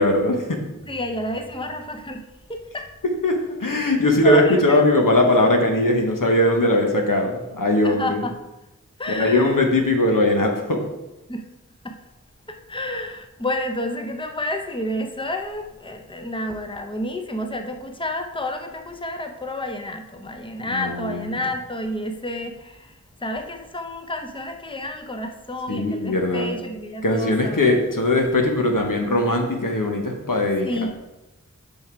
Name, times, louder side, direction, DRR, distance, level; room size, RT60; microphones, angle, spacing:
voice 1, 0.0-0.7 3.0-8.2 9.1-10.8 20.6-21.4 25.7-26.5 27.0-30.9, left 1 dB, 80° left, 2 dB, 1.2 m, -20 dB
voice 2, 0.9-2.9 4.2-4.8 7.8-8.4 9.0-9.6 11.3-11.4 11.8-12.0 12.5-27.6 30.6-30.9, left 1 dB, 15° left, 5 dB, 0.8 m, -30 dB
6.9 x 5.8 x 4.6 m, 0.99 s
wide cardioid pair, 50°, 32 cm